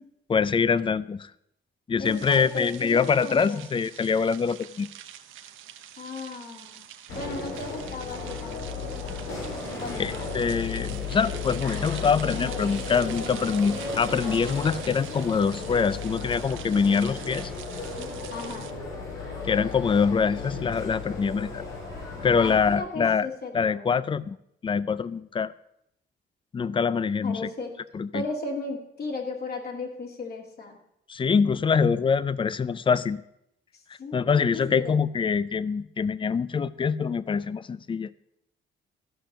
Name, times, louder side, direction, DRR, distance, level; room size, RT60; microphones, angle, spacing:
voice 1, 0.3-1.3 1.9-4.9 10.0-17.5 19.4-21.6 22.2-23.3 23.5-24.4 24.6-25.5 26.5-27.5 27.9-28.2 31.1-33.2 34.1-38.1, left 6 dB, 25° left, 18 dB, 0.4 m, -24 dB
voice 2, 2.0-3.6 6.0-6.9 7.1-8.8 9.8-10.3 18.3-18.7 22.2-23.9 27.2-27.7 28.1-30.8 33.7-35.0, left 3 dB, 50° left, 2 dB, 2.5 m, -36 dB
sound 1, 2.0-18.7, right 11 dB, 80° right, 0.8 m, -45 dB
sound 2, 7.1-22.8, left 4 dB, 85° left, 3.7 m, -35 dB
13.5 x 5.9 x 6.6 m, 0.78 s
cardioid pair, 90°, 20 cm